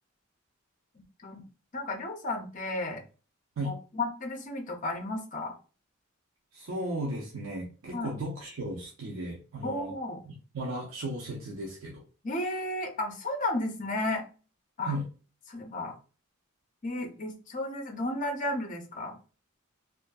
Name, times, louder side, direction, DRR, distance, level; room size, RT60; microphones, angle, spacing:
voice 1, 1.7-3.0 3.6-5.5 7.9-8.1 9.6-10.2 12.2-14.2 14.8-15.0 15.5-15.9 16.8-19.2, left 2 dB, 35° left, 3 dB, 0.5 m, -33 dB
voice 2, 6.5-9.9 10.3-12.0 14.9-15.0, right 1 dB, 70° right, -1 dB, 0.5 m, -35 dB
2.6 x 2.4 x 2.2 m, 0.36 s
head